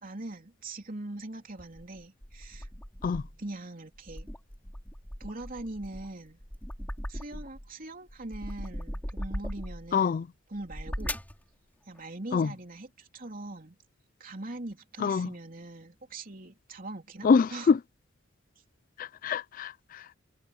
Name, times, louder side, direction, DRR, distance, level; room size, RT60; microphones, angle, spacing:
voice 1, 0.0-2.7 3.4-4.3 5.2-6.4 7.1-10.2 10.5-11.2 11.9-13.8 14.2-17.7, right 2 dB, 45° right, 3.3 m, -41 dB
sound 1, 1.6-3.5 3.9-7.7 8.1-9.9 10.6-11.4, equal, 10° left, 3.4 m, -39 dB
voice 2, 9.9-10.3 12.3-12.5 15.0-15.3 17.2-17.8 19.0-20.0, left 5 dB, 45° left, 0.3 m, -25 dB
head